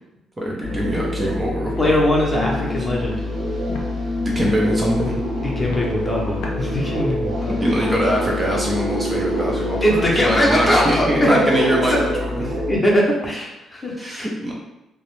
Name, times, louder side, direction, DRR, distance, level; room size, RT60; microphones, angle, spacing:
voice 1, 0.4-2.0 2.3-2.7 4.4-5.2 7.6-12.6 14.0-14.5, equal, 20° right, -2 dB, 0.5 m, -23 dB
sound 1, 0.6-12.8, left 1 dB, 80° right, 0.5 m, -27 dB
Walk footsteps, 1.7-1.8 2.3-2.5 3.0-3.1 3.7-3.8 4.3-4.6 5.0-5.2 5.6-5.9 6.4-6.6, left 2 dB, 90° left, 0.4 m, -34 dB
voice 2, 1.8-3.3 5.4-8.0 9.8-11.4 11.9-12.0 12.7-14.3, left 1 dB, 20° left, -3 dB, 0.7 m, -21 dB
sound 2, 2.1-12.5, left 1 dB, 40° right, 1.1 m, -31 dB
2.4 x 2.0 x 3.0 m, 0.92 s
cardioid pair, 90°, 0 cm